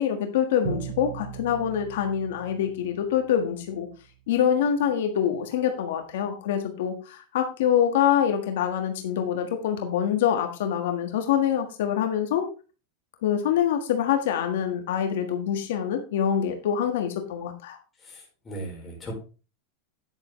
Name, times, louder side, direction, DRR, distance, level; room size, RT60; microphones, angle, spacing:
voice 1, 0.0-3.9 4.3-12.5 13.2-17.8, left 9 dB, 75° left, 5 dB, 1.6 m, -25 dB
Bowed string instrument, 0.6-3.5, right 9 dB, 55° right, 3.6 m, -38 dB
voice 2, 18.1-19.1, right 1 dB, 15° left, -1 dB, 4.3 m, -38 dB
9.8 x 8.6 x 3.2 m, 0.34 s
supercardioid pair, 155°, 0 cm